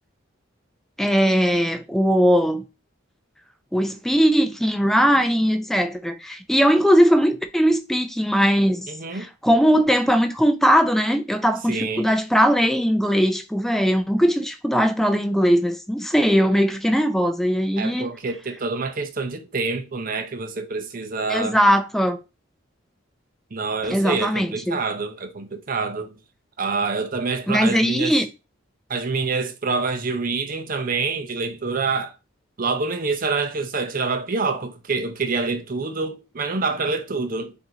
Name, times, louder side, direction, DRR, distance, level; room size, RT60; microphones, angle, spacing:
voice 1, 1.0-2.6 3.7-18.1 21.3-22.2 23.9-24.8 27.5-28.3, equal, ahead, 0.4 m, -20 dB
voice 2, 8.9-9.3 11.7-12.1 17.8-21.6 23.5-26.2 26.6-28.2 28.9-32.1 32.6-37.5, right 4 dB, 45° right, 0.6 m, -26 dB
4.5 x 2.7 x 3.8 m
head